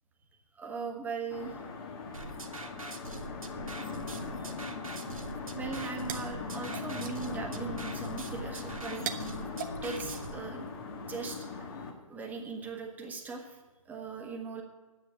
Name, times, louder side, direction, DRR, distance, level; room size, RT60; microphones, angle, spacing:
voice 1, 0.5-1.6 4.4-4.5 4.8-5.0 5.5-9.1 9.8-10.6 11.1-11.5 12.1-13.6 13.8-14.6, right 4 dB, 10° right, 1 dB, 1.5 m, -39 dB
sound 1, 1.3-11.9, left 4 dB, 45° left, 1.8 m, -40 dB
sound 2, 2.1-10.3, right 3 dB, 80° right, 1.5 m, -44 dB
sound 3, 5.6-10.9, right 8 dB, 35° right, 1.0 m, -45 dB
10.0 x 7.7 x 8.4 m, 1.3 s
figure-of-eight pair, 130°, 18 cm